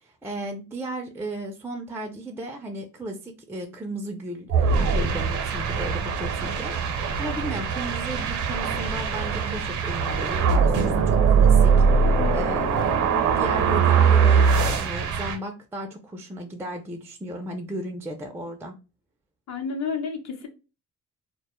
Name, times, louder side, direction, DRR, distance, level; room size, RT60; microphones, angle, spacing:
voice 1, 0.0-18.8, right 1 dB, 10° right, 0.3 m, -35 dB
sound 1, 4.5-15.4, right 6 dB, 75° right, 0.6 m, -21 dB
voice 2, 19.5-20.5, left 5 dB, 60° left, 0.7 m, -30 dB
2.1 x 2.0 x 2.9 m
cardioid pair, 90°, 30 cm